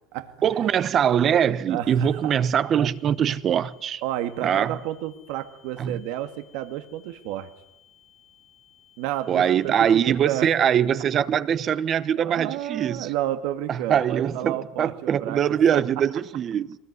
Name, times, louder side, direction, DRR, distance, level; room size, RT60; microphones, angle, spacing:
voice 1, 0.4-4.0 4.4-4.8 5.8-6.0 9.3-13.1 13.7-16.8, right 9 dB, 35° right, 1.0 m, -22 dB
voice 2, 1.7-2.3 4.0-7.5 9.0-9.7 10.1-10.5 12.2-15.4 15.7-15.8, right 13 dB, 75° right, 1.9 m, -31 dB
sound 1, 2.0-10.0, left 10 dB, 10° left, 2.2 m, -58 dB
23.5 x 20.0 x 9.6 m
cardioid pair, 150°, 0 cm